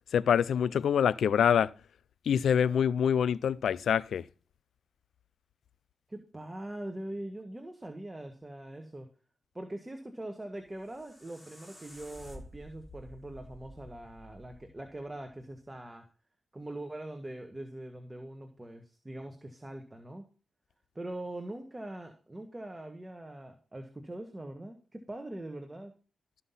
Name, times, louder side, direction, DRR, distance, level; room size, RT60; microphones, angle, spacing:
voice 1, 0.1-1.7 2.3-4.2, left 8 dB, 80° left, 0.4 m, -25 dB
voice 2, 6.1-9.1 9.5-16.0 16.5-20.3 20.9-25.9, right 1 dB, 20° right, 1.5 m, -42 dB
sound 1, 10.6-15.7, equal, ahead, 2.9 m, -52 dB
13.0 x 5.8 x 5.6 m
cardioid pair, 65°, 0 cm